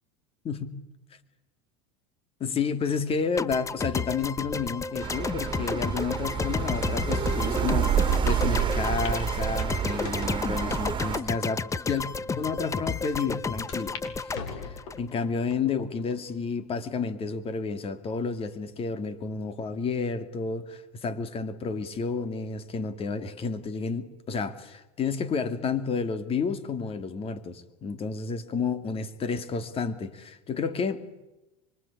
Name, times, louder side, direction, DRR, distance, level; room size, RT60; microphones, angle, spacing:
voice 1, 2.4-12.0 12.4-31.0, left 5 dB, 35° left, 11 dB, 2.8 m, -31 dB
sound 1, 3.4-15.6, left 4 dB, 15° left, 1.0 m, -32 dB
sound 2, 5.0-11.2, right 8 dB, 30° right, 3.3 m, -28 dB
sound 3, 8.6-8.7 9.0-9.2 9.6-10.5 11.1-11.2 11.9-12.0 12.3-12.4 13.7-14.1 14.3-15.1 15.7-16.1 16.6-16.7 17.9-18.3, left 6 dB, 75° left, 6.9 m, -41 dB
25.0 x 24.0 x 8.7 m, 1.0 s
supercardioid pair, 115°, 17 cm